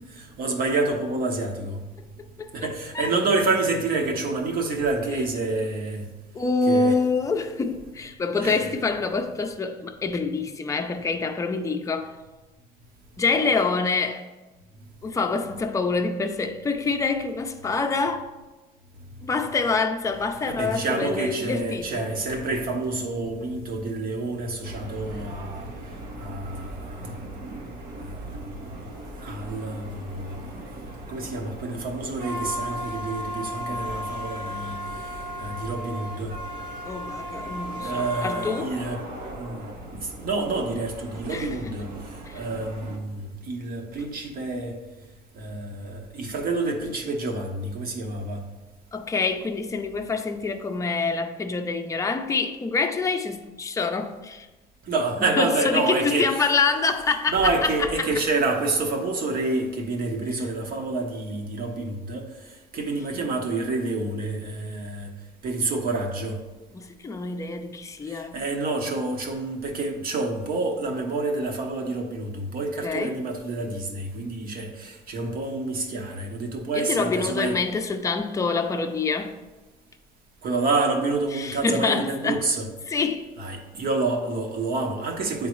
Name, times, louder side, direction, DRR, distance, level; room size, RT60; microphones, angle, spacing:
voice 1, 0.2-1.8 2.5-6.1 6.7-6.9 8.4-8.7 20.5-28.8 29.2-30.5 31.1-36.4 37.8-39.7 40.0-44.8 45.3-48.4 54.8-56.5 57.3-65.1 65.4-66.4 68.1-77.6 80.4-82.7 83.4-85.5, right 3 dB, 60° right, 1.1 m, -28 dB
voice 2, 6.3-12.1 13.2-14.2 15.0-18.3 19.2-22.0 36.9-38.7 41.3-41.5 42.3-42.4 48.9-54.5 55.4-57.3 57.6-57.7 58.0-58.1 66.7-68.3 72.8-73.1 76.7-79.3 81.3-82.4 82.9-83.3, left 4 dB, 20° left, 0.5 m, -26 dB
sound 1, 24.7-43.0, equal, 85° right, 1.1 m, -36 dB
9.3 x 3.8 x 3.1 m
cardioid pair, 110°, 17 cm